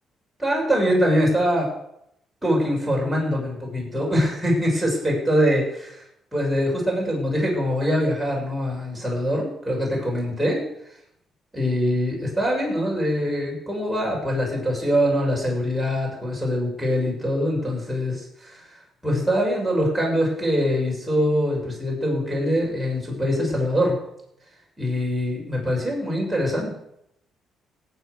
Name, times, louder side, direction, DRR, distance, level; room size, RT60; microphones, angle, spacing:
voice 1, 0.4-1.7 2.4-6.0 6.3-10.6 11.5-18.6 19.0-24.0 24.8-26.7, equal, ahead, -4 dB, 7.2 m, -23 dB
18.0 x 8.1 x 6.7 m, 0.78 s
cardioid pair, 90°, 0 cm